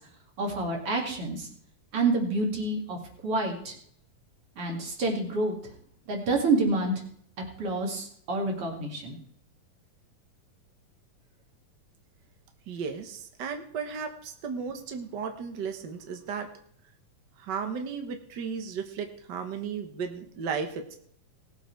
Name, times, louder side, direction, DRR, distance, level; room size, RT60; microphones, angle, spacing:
voice 1, 0.4-1.5 1.9-3.0 3.2-3.7 4.6-5.6 6.1-6.9 7.6-9.2, right 2 dB, 45° right, 1 dB, 3.0 m, -28 dB
voice 2, 12.7-16.5 17.4-20.9, right 6 dB, 80° right, 5 dB, 0.9 m, -35 dB
18.0 x 8.0 x 4.6 m, 0.63 s
omnidirectional pair, 3.8 m